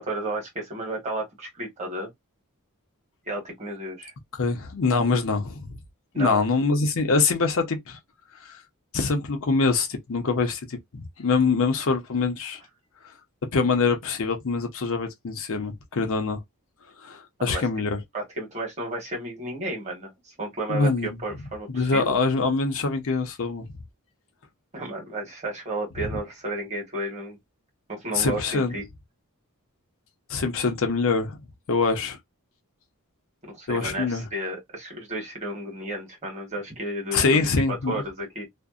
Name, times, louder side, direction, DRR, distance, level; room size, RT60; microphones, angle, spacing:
voice 1, 0.0-2.1 3.3-4.1 6.1-6.4 17.5-17.6 18.1-20.1 20.4-22.1 24.7-27.4 27.9-28.8 33.4-37.2 37.7-38.5, right 1 dB, 30° right, 1.2 m, -32 dB
voice 2, 4.4-5.7 6.1-8.0 8.4-8.6 8.9-12.6 13.5-16.4 17.0-18.0 20.7-21.2 21.7-23.7 26.0-26.2 28.1-28.7 30.3-31.4 31.7-32.2 33.7-34.3 37.1-38.0, left 4 dB, 65° left, 0.7 m, -24 dB
2.6 x 2.1 x 2.3 m
head